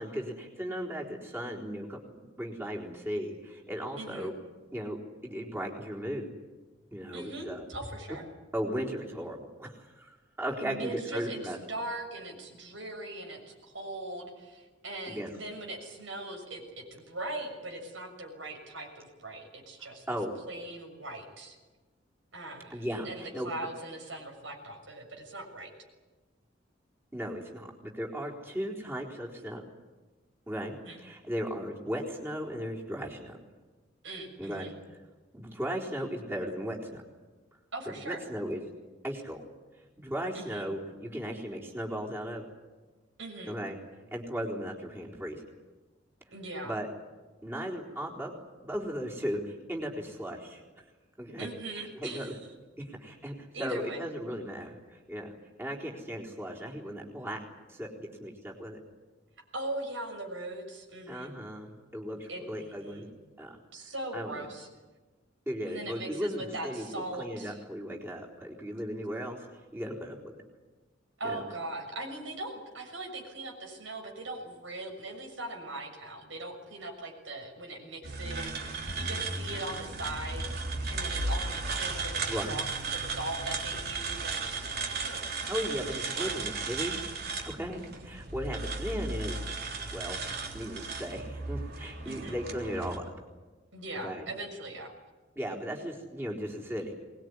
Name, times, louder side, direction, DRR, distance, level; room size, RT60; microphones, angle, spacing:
voice 1, 0.0-4.3 4.7-6.3 6.9-7.6 8.5-11.6 15.1-15.3 20.1-20.3 22.7-23.5 27.1-29.6 30.5-33.4 34.4-34.7 35.3-37.0 37.9-38.6 39.0-39.4 40.0-42.5 43.5-43.8 44.1-45.4 46.6-46.9 47.4-48.3 48.6-50.6 51.2-51.5 51.7-52.3 52.8-55.3 55.6-58.8 61.1-63.1 63.4-63.6 63.8-64.5 65.5-69.5 69.7-70.4 71.2-71.4 82.3-82.6 85.5-87.0 87.4-89.4 89.9-90.2 90.5-93.0 94.0-94.3 95.4-96.9, equal, 15° right, -2 dB, 4.0 m, -36 dB
voice 2, 4.0-4.3 7.1-8.3 10.6-20.0 20.5-21.5 22.3-25.7 30.8-31.0 34.0-34.7 37.7-38.2 40.3-40.6 43.2-43.6 46.3-46.7 51.4-52.4 53.5-54.0 59.5-61.3 62.1-63.1 63.7-64.7 65.6-67.6 71.2-82.6 82.9-85.4 85.9-86.7 92.0-92.4 93.7-94.9, right 2 dB, 80° right, 2 dB, 6.6 m, -40 dB
sound 1, 78.0-93.0, right 3 dB, 55° right, 3.6 m, -35 dB
23.5 x 20.5 x 9.8 m, 1.2 s
head